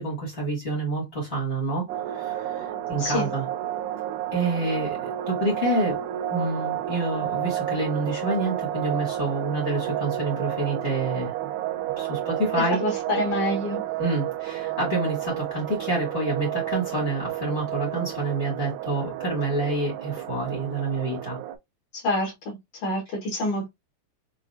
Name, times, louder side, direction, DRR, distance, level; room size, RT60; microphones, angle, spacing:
voice 1, 0.0-3.4 4.3-6.0 6.3-11.3 12.0-12.8 14.0-21.4, right 2 dB, 45° left, 0.7 m, -28 dB
sound 1, 1.9-21.6, right 13 dB, 85° right, 2.7 m, -31 dB
voice 2, 3.0-3.3 12.8-13.8 21.9-22.6 22.8-23.7, left 1 dB, 90° left, 1.4 m, -27 dB
6.9 x 2.3 x 2.5 m
omnidirectional pair, 5.0 m